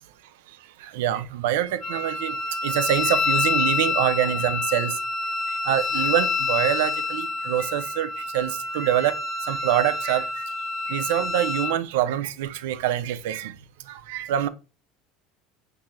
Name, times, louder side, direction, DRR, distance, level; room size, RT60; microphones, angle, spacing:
voice 1, 0.5-5.0 5.5-10.5 10.8-13.6 13.9-14.5, right 12 dB, 90° right, 0.4 m, -25 dB
Wind instrument woodwind instrument, 1.8-11.8, left 4 dB, 30° left, 0.6 m, -27 dB
5.6 x 2.7 x 2.4 m
supercardioid pair, 115°, 0 cm